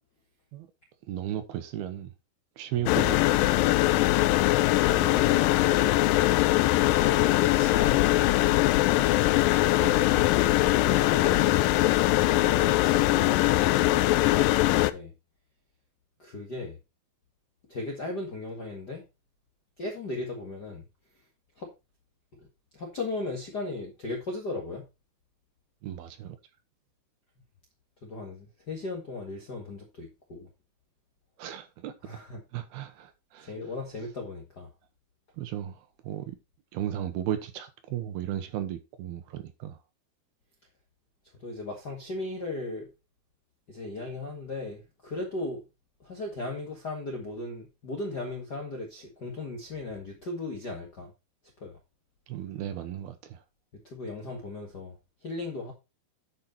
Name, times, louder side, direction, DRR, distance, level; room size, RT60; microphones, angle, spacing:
voice 1, 1.1-2.1 2.6-3.4 9.8-10.3 25.8-26.4 31.4-31.9 32.5-33.5 35.4-36.4 36.7-39.8 52.3-53.4, right 11 dB, 75° right, 3.0 m, -35 dB
sound 1, 2.9-14.9, left 17 dB, 85° left, 1.9 m, -22 dB
voice 2, 6.8-8.8 10.8-12.0 14.3-15.1 16.2-16.8 17.7-19.0 19.8-20.8 21.6-21.7 22.4-22.5 22.7-24.9 28.0-30.5 32.0-32.4 33.4-34.7 41.4-42.9 43.7-45.6 46.0-51.1 51.6-51.8 53.8-55.7, left 2 dB, 50° left, 1.2 m, -37 dB
10.5 x 5.7 x 4.3 m
omnidirectional pair, 4.6 m